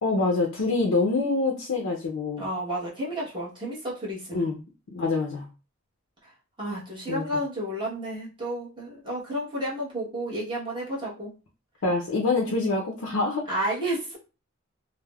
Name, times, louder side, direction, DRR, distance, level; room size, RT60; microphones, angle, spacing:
voice 1, 0.0-2.4 4.3-4.6 4.9-5.5 7.1-7.2 11.8-13.4, left 3 dB, 75° left, 0 dB, 0.5 m, -25 dB
voice 2, 2.4-4.5 6.6-11.3 13.5-14.2, right 1 dB, 25° right, -7 dB, 1.0 m, -31 dB
3.3 x 2.0 x 2.2 m, 0.33 s
head